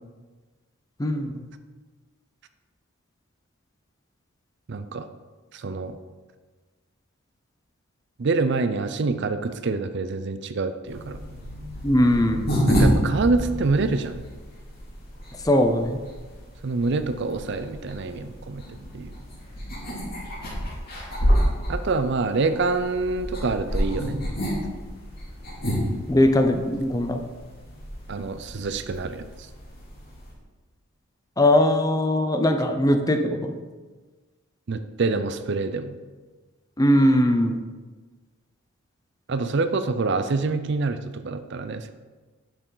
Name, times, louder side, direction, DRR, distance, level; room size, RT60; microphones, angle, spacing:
voice 1, 1.0-1.4 11.8-12.4 15.4-16.0 26.1-27.3 31.4-33.5 36.8-37.6, left 1 dB, 15° left, 6 dB, 0.6 m, -20 dB
voice 2, 4.7-5.1 5.5-6.0 8.2-11.2 12.7-14.2 16.6-18.6 18.9-19.1 21.7-24.2 28.1-29.2 34.7-36.0 39.3-41.9, right 3 dB, 55° right, 11 dB, 0.5 m, -26 dB
sound 1, 10.8-30.3, equal, 45° left, 2.8 m, -29 dB
10.0 x 6.8 x 4.0 m, 1.3 s
head